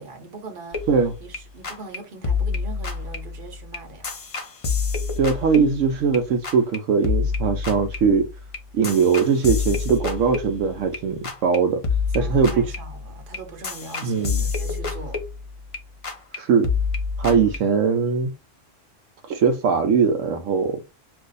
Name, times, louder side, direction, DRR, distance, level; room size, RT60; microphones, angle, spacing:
voice 1, 0.0-0.8 1.2-4.1 12.2-15.2, right 3 dB, 50° right, 0.9 m, -41 dB
sound 1, 0.7-1.4 1.6-2.0 2.2-6.2 6.4-6.8 7.0-11.0 11.2-11.6 11.8-15.8 16.0-16.4 16.6-17.6, left 5 dB, 40° left, 0.5 m, -28 dB
voice 2, 5.2-8.3 8.7-11.8 12.1-12.6 14.0-14.4 16.3-16.7 17.2-18.3 19.3-20.8, right 5 dB, 80° right, 0.9 m, -20 dB
2.6 x 2.4 x 3.8 m
omnidirectional pair, 1.3 m